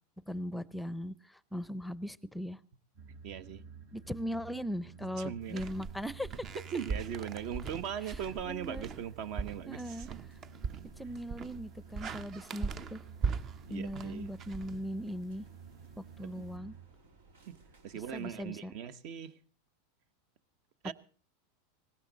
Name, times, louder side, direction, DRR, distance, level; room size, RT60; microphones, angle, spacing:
voice 1, 0.3-2.6 3.9-6.4 8.1-8.2 8.4-8.9 9.7-10.1 11.0-13.0 13.7-15.4 16.0-16.7 18.1-18.7, equal, ahead, 0.7 m, -39 dB
sound 1, 2.9-16.9, right 6 dB, 70° right, 5.5 m, -51 dB
voice 2, 3.1-3.6 5.2-5.7 6.7-10.1 13.7-14.2 16.2-16.4 17.5-17.6 17.8-19.3 20.8-20.9, right 8 dB, 55° right, 1.2 m, -39 dB
sound 2, 5.5-15.4, right 5 dB, 35° right, 0.7 m, -40 dB
sound 3, 10.0-18.4, right 3 dB, 90° right, 3.1 m, -61 dB
18.5 x 16.0 x 4.0 m
hypercardioid pair, 120°, 0 cm